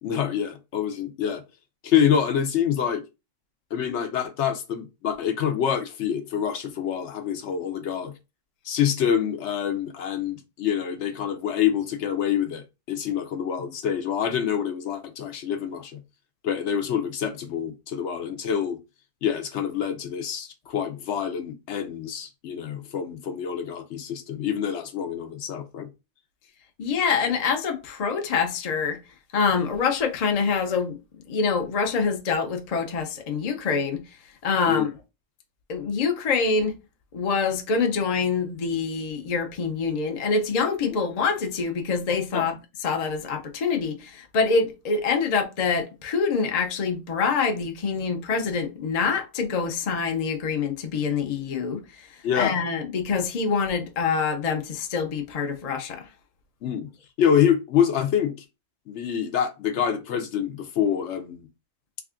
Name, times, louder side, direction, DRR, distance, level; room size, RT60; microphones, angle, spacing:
voice 1, 0.0-1.4 1.8-3.0 3.7-8.1 8.6-16.0 16.4-18.8 19.2-25.9 34.7-34.9 42.3-42.5 52.2-52.6 56.6-56.9 57.2-58.4 58.9-61.5, left 8 dB, 70° left, 0.9 m, -26 dB
voice 2, 26.8-29.0 29.3-31.0 31.3-34.0 34.4-34.9 35.7-36.8 37.1-42.5 42.8-52.1 52.4-56.1, left 5 dB, 45° left, 0.5 m, -25 dB
3.4 x 2.3 x 3.6 m
omnidirectional pair, 1.3 m